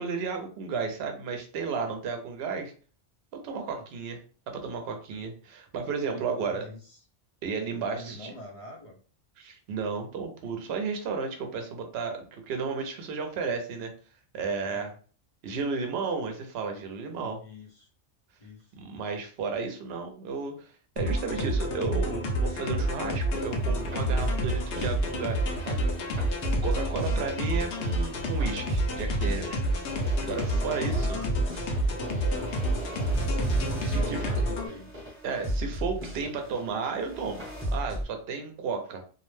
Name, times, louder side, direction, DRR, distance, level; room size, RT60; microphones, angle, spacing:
voice 1, 0.0-2.7 3.3-4.2 4.5-6.6 7.4-8.3 9.4-13.9 14.3-14.9 15.4-17.4 18.8-26.4 26.6-29.6 30.2-31.2 33.8-34.3 35.2-39.0, right 5 dB, 65° right, 4 dB, 0.8 m, -33 dB
voice 2, 6.1-7.0 7.8-9.0 14.7-15.0 17.4-17.9 18.4-18.7 27.1-27.3 30.9-31.7 32.3-32.5 33.9-34.9, equal, 45° left, -1 dB, 0.4 m, -43 dB
sound 1, 21.0-34.7, right 1 dB, 75° left, 0.9 m, -28 dB
sound 2, 23.3-38.0, right 1 dB, 10° right, 0.8 m, -35 dB
2.5 x 2.0 x 3.1 m, 0.41 s
omnidirectional pair, 1.2 m